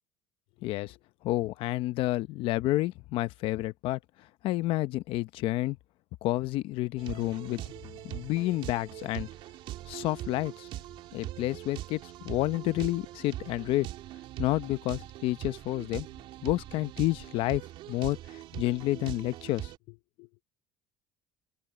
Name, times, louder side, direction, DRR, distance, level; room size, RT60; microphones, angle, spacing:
voice 1, 0.6-0.9 1.2-4.0 4.4-5.8 6.2-7.6 8.0-9.3 9.9-10.7 11.1-13.9 14.4-16.1 16.4-17.6 17.9-18.2 18.5-20.3, left 17 dB, 60° left, 0.9 m, -30 dB
sound 1, 7.0-19.8, right 14 dB, 60° right, 2.5 m, -42 dB
open air
cardioid pair, 145°, 10 cm